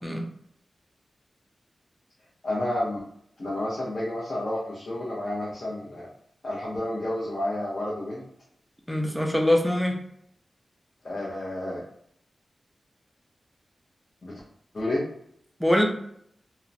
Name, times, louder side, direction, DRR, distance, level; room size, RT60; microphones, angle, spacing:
voice 1, 2.4-3.0 3.4-6.1 6.4-8.2 11.0-11.8 14.2-14.3 14.7-15.1, left 1 dB, 45° left, -7 dB, 0.6 m, -30 dB
voice 2, 8.9-10.0 15.6-15.8, left 1 dB, ahead, 1 dB, 0.4 m, -23 dB
2.8 x 2.0 x 2.5 m, 0.69 s
wide cardioid pair, 160°, 0 cm